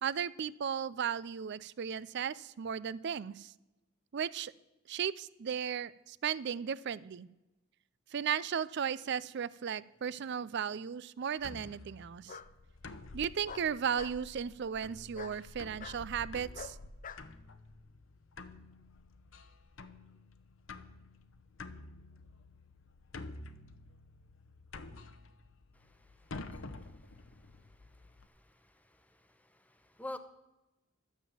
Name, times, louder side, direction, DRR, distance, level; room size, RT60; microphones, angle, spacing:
voice 1, 0.0-3.5 4.1-4.5 4.9-7.3 8.1-12.4 13.1-16.8, right 8 dB, 60° right, 19 dB, 0.4 m, -35 dB
Bark, 10.1-10.7 12.3-12.5 13.4-14.2 15.1-15.4 15.8-16.0 16.5-17.2, left 6 dB, 40° left, 0.6 m, -46 dB
sound 1, 11.4-28.3, left 2 dB, 75° left, 0.8 m, -50 dB
voice 2, 25.7-30.2, left 1 dB, 10° left, 9 dB, 0.9 m, -51 dB
12.5 x 7.3 x 7.2 m, 0.98 s
head